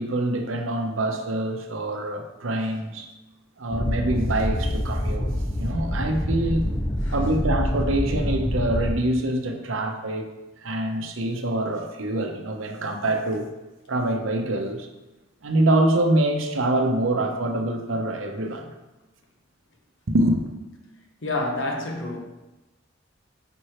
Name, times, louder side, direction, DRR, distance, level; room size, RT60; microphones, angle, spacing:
voice 1, 0.0-3.1 3.6-5.3 5.6-6.7 7.1-10.3 10.6-13.5 13.9-14.9 15.4-18.7 20.1-20.4, right 1 dB, 80° right, 5 dB, 0.8 m, -25 dB
sound 1, 3.7-8.9, left 1 dB, 15° left, 0.4 m, -26 dB
voice 2, 21.2-22.2, left 2 dB, 70° left, 2 dB, 1.1 m, -28 dB
5.3 x 4.3 x 4.8 m, 1.1 s
head